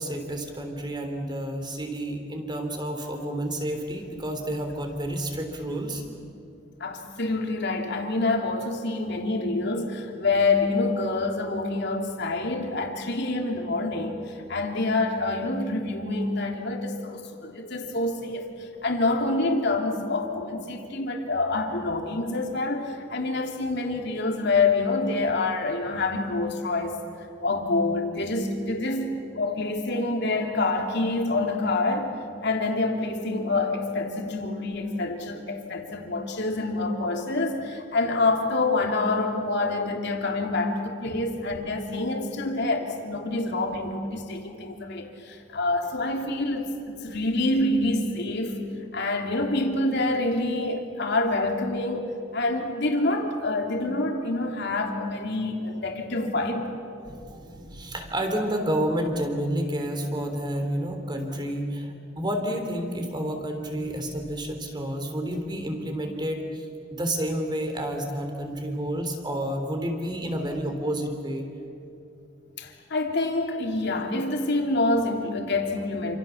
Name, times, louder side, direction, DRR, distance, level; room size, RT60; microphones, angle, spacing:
voice 1, 0.0-6.0 41.1-41.2 47.1-47.2 57.1-71.5, right 1 dB, 25° right, 4 dB, 3.5 m, -30 dB
voice 2, 6.8-27.0 27.4-32.1 32.4-48.6 48.9-56.7 72.6-76.2, left 2 dB, 60° left, 2 dB, 3.1 m, -27 dB
29.0 x 26.5 x 7.2 m, 2.6 s
head